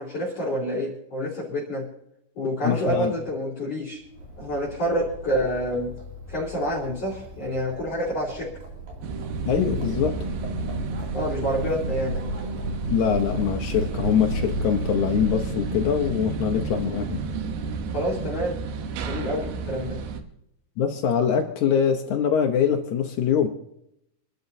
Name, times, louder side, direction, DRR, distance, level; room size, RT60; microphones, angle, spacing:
voice 1, 0.0-1.9 2.4-4.0 4.4-5.9 6.3-8.5 11.1-12.2 17.9-18.6 19.1-20.0, equal, 40° left, -6 dB, 3.8 m, -28 dB
voice 2, 2.6-3.1 9.5-10.2 12.9-17.2 20.8-23.5, left 8 dB, 75° left, 3 dB, 1.8 m, -23 dB
Livestock farm animals working animals, 3.9-15.6, left 1 dB, 55° right, 3.9 m, -37 dB
sound 1, 9.0-20.2, right 4 dB, 75° right, 2.9 m, -30 dB
27.5 x 12.0 x 2.7 m, 0.76 s
omnidirectional pair, 4.4 m